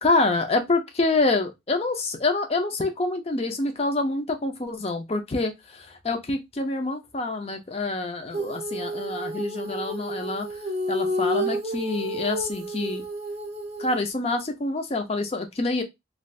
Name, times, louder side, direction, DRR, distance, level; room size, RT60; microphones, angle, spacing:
voice 1, 0.0-10.5 10.9-13.0 13.8-15.8, left 2 dB, 30° left, 0.5 m, -26 dB
Female singing, 8.3-14.0, equal, 35° right, 0.7 m, -30 dB
2.5 x 2.4 x 3.1 m
head